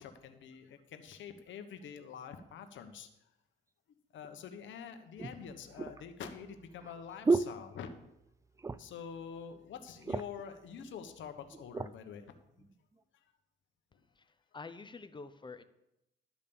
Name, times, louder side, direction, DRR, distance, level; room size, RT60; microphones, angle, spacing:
voice 1, 0.0-3.1 4.1-7.9 8.7-12.3 13.9-14.0, left 7 dB, 70° left, 7 dB, 1.2 m, -46 dB
sound 1, 4.2-4.3 5.2-8.3 8.6-9.1 9.4-9.5 9.8-10.5 11.2-12.0 12.6-12.8, right 3 dB, 15° right, 0.4 m, -35 dB
voice 2, 14.2-15.6, left 4 dB, 25° left, 11 dB, 0.9 m, -48 dB
12.5 x 5.3 x 7.0 m, 0.86 s
cardioid pair, 90°, 20 cm